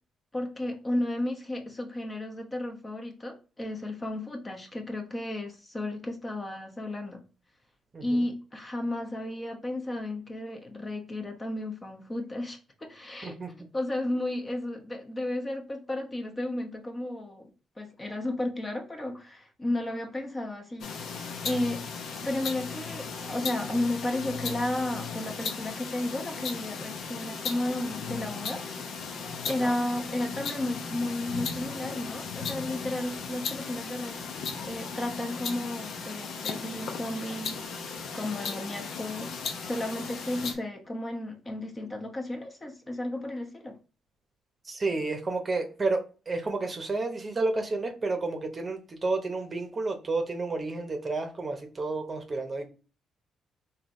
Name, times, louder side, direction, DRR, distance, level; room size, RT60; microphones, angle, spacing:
voice 1, 0.3-7.2 8.0-13.4 13.7-17.5 17.8-21.8 22.2-28.8 29.5-34.2 34.6-39.3 39.6-43.8, left 1 dB, 20° left, 0.9 m, -33 dB
sound 1, 20.8-40.5, left 5 dB, 70° left, 0.7 m, -36 dB
voice 2, 44.6-52.7, right 3 dB, 30° right, 0.8 m, -31 dB
3.9 x 2.7 x 3.1 m
cardioid pair, 90°, 0 cm